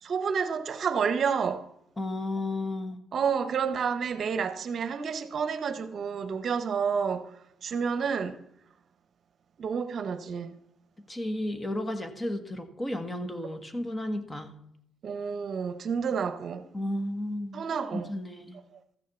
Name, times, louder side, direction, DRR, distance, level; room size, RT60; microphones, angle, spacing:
voice 1, 0.0-1.7 3.1-8.4 9.6-10.5 15.0-16.7 17.5-18.1, right 6 dB, 55° right, 0.8 m, -30 dB
voice 2, 2.0-3.0 11.1-14.6 16.7-17.7 17.9-18.6, left 1 dB, 20° left, 1.4 m, -33 dB
14.0 x 6.4 x 7.0 m
cardioid pair, 90°, 0 cm